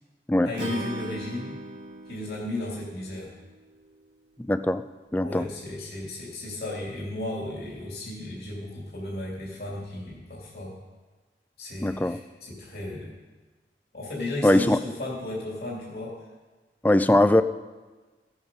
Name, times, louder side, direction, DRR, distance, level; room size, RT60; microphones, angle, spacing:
voice 1, 0.4-1.5 2.1-3.3 5.2-10.7 11.6-13.1 13.9-16.1, left 2 dB, 60° left, -4 dB, 2.8 m, -34 dB
Acoustic guitar / Strum, 0.6-3.8, right 1 dB, 85° right, 2.2 m, -38 dB
voice 2, 4.5-4.8 5.1-5.5 11.8-12.2 14.4-14.8 16.8-17.4, left 1 dB, 10° left, 12 dB, 0.3 m, -20 dB
16.0 x 8.1 x 5.3 m, 1.3 s
head